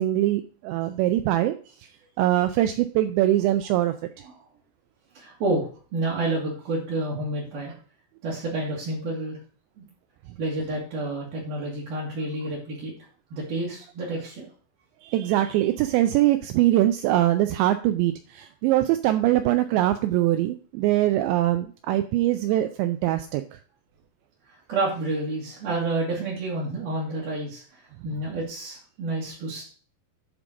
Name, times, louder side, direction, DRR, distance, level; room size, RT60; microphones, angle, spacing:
voice 1, 0.0-1.6 2.2-3.9 15.0-23.6, right 14 dB, 90° right, 9 dB, 2.5 m, -22 dB
voice 2, 5.1-7.7 8.2-9.4 9.8-9.9 10.4-12.9 13.3-14.5 24.7-29.6, right 2 dB, 60° right, -5 dB, 3.2 m, -29 dB
11.0 x 3.7 x 6.0 m, 0.40 s
omnidirectional pair, 5.7 m